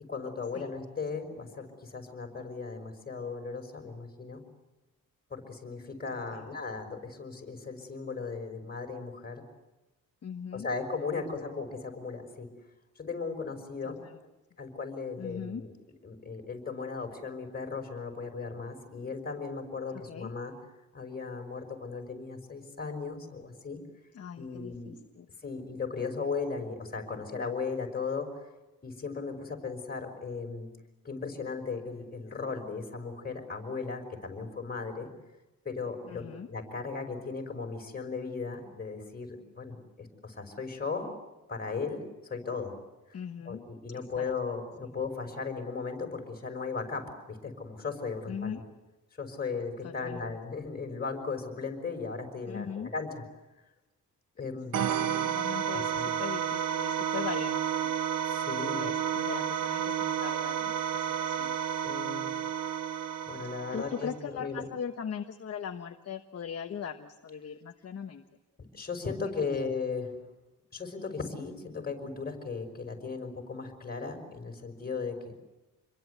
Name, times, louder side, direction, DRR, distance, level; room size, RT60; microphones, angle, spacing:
voice 1, 0.1-4.4 5.3-9.4 10.5-12.5 13.0-14.0 14.6-15.7 16.0-20.5 20.9-23.8 24.4-24.9 25.4-28.3 28.8-30.7 31.0-35.1 35.7-41.1 41.5-42.7 43.1-43.2 43.5-48.6 49.2-53.2 54.4-54.9 55.7-56.1 58.3-58.9 61.8-62.4 63.3-64.6 68.7-70.1 70.7-75.4, left 4 dB, 25° left, 4 dB, 5.4 m, -37 dB
voice 2, 6.1-6.6 10.2-10.7 11.1-11.6 14.0-14.2 15.2-15.6 20.1-20.3 24.1-25.3 36.1-36.5 43.1-43.6 43.9-44.3 48.3-48.6 49.8-50.4 52.5-52.9 54.7-57.9 58.7-61.6 63.7-68.2 69.4-69.5, left 7 dB, 45° left, 5 dB, 1.3 m, -40 dB
sound 1, 54.7-64.2, right 9 dB, 65° right, 0.9 m, -31 dB
27.5 x 22.5 x 8.2 m, 1.1 s
wide cardioid pair, 140°, 34 cm